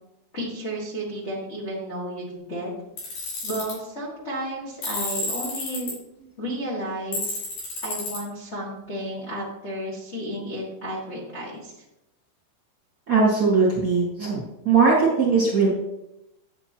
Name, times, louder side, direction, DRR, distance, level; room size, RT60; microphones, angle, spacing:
voice 1, 0.3-2.7 3.4-5.9 6.4-7.4 7.8-11.7, right 1 dB, 50° left, -6 dB, 0.7 m, -32 dB
Tools, 3.0-3.7 4.8-5.9 7.1-8.2, left 2 dB, 70° left, 5.6 m, -30 dB
voice 2, 13.1-15.7, right 4 dB, 35° right, -6 dB, 1.6 m, -20 dB
9.7 x 9.2 x 3.0 m, 0.89 s
omnidirectional pair, 4.8 m